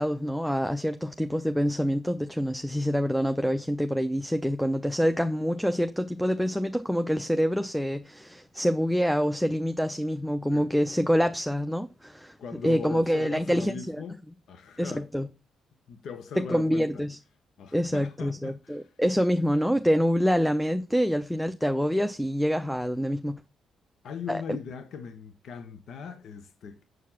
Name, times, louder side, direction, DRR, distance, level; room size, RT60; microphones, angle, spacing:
voice 1, 0.0-12.4 12.6-14.0 14.8-15.3 16.4-17.2 17.7-23.4 24.3-24.4, equal, ahead, 0.6 m, -26 dB
voice 2, 12.4-15.1 15.9-17.0 17.6-18.9 24.0-26.8, left 6 dB, 70° left, 1.1 m, -40 dB
8.2 x 4.6 x 5.8 m
cardioid pair, 90°, 0 cm